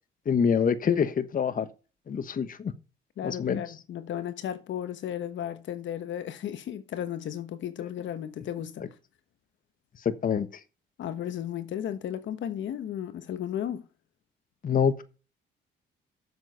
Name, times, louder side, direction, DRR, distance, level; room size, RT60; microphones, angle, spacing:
voice 1, 0.3-1.7 2.1-2.7 3.2-3.6 10.0-10.5 14.6-15.0, left 7 dB, 45° left, 1.1 m, -25 dB
voice 2, 3.2-8.8 11.0-13.8, left 10 dB, 70° left, 1.2 m, -34 dB
7.3 x 6.4 x 6.7 m
cardioid pair, 90°, 20 cm